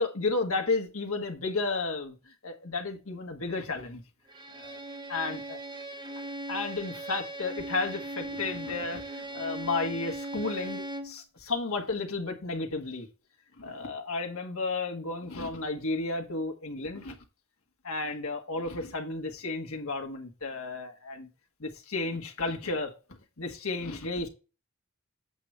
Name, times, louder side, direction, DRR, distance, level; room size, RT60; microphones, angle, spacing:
voice 1, 0.0-4.0 4.5-4.8 5.1-5.6 6.5-13.1 13.6-17.1 17.8-21.3 21.6-22.9 23.4-24.3, left 3 dB, 75° left, 1.6 m, -33 dB
Bowed string instrument, 4.3-11.2, right 1 dB, 20° right, 0.7 m, -39 dB
8.1 x 6.4 x 3.3 m
head